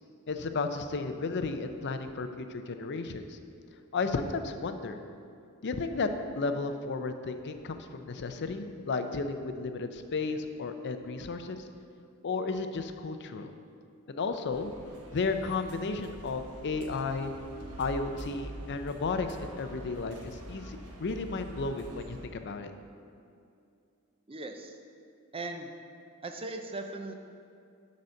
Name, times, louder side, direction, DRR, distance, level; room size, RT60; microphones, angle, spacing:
voice 1, 0.3-3.4 3.9-5.0 5.6-6.1 6.4-11.7 12.2-13.5 14.1-14.7 15.1-17.3 17.8-22.7, left 4 dB, 50° left, 8 dB, 0.5 m, -33 dB
sound 1, 14.5-22.2, right 1 dB, 85° right, 1.1 m, -45 dB
voice 2, 24.3-24.8 25.3-25.7 26.2-27.2, right 2 dB, 25° right, 5 dB, 0.5 m, -38 dB
10.5 x 4.1 x 6.5 m, 2.5 s
head